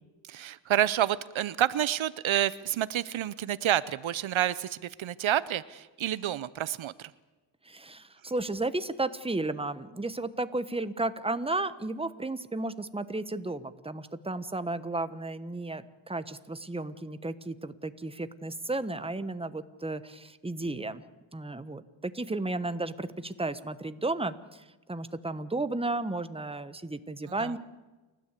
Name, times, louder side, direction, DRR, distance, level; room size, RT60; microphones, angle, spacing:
voice 1, 0.3-7.1 27.4-27.5, right 11 dB, 75° right, 18 dB, 0.7 m, -29 dB
voice 2, 7.6-21.0 21.3-27.6, right 2 dB, 10° right, 12 dB, 1.2 m, -33 dB
29.0 x 13.0 x 8.3 m, 1.2 s
cardioid pair, 70°, 47 cm